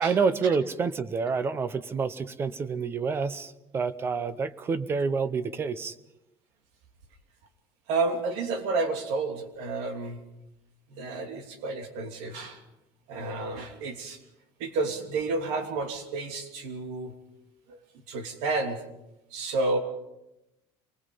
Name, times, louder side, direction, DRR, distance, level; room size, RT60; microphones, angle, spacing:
voice 1, 0.0-5.9, right 5 dB, 20° right, 15 dB, 0.7 m, -28 dB
voice 2, 7.9-10.2 10.9-12.6 13.1-14.2 14.6-17.1 17.7-17.8 18.1-18.8 19.3-19.8, right 3 dB, 85° right, 5 dB, 2.9 m, -30 dB
25.5 x 20.5 x 5.5 m, 0.90 s
cardioid pair, 180°, 11 cm